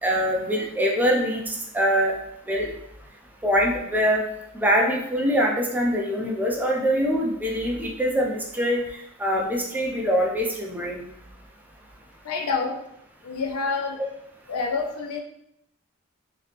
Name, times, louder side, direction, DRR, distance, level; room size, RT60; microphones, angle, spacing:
voice 1, 0.0-2.1 2.5-2.7 3.4-4.2 4.5-8.8 9.2-11.1, equal, 10° right, -2 dB, 0.5 m, -23 dB
voice 2, 12.2-12.8 13.2-14.0 14.5-15.2, left 4 dB, 85° left, 2 dB, 0.5 m, -27 dB
2.8 x 2.8 x 3.3 m, 0.77 s
head